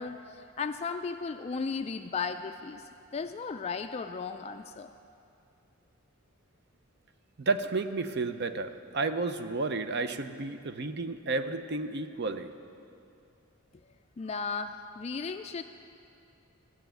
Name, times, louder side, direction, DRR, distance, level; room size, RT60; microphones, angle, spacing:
voice 1, 0.0-4.9 14.2-15.6, left 5 dB, 30° left, 7 dB, 0.3 m, -35 dB
voice 2, 7.4-12.5, right 3 dB, 50° right, 10 dB, 0.6 m, -32 dB
15.0 x 7.0 x 9.1 m, 2.6 s
head